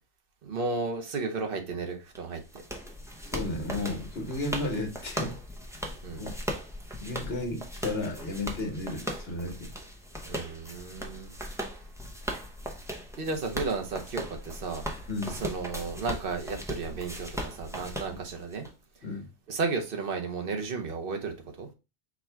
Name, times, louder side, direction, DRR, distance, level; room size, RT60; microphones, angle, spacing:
voice 1, 0.4-2.6 6.0-6.2 10.2-11.3 13.2-14.8 15.4-18.7 19.5-21.7, right 4 dB, 55° right, 1.1 m, -33 dB
sound 1, 2.1-18.7, equal, 5° right, 0.4 m, -38 dB
voice 2, 3.3-5.3 6.1-6.3 7.0-9.7 15.1-15.4 19.0-19.3, left 2 dB, 65° left, 1.3 m, -33 dB
4.8 x 2.3 x 4.4 m
omnidirectional pair, 1.1 m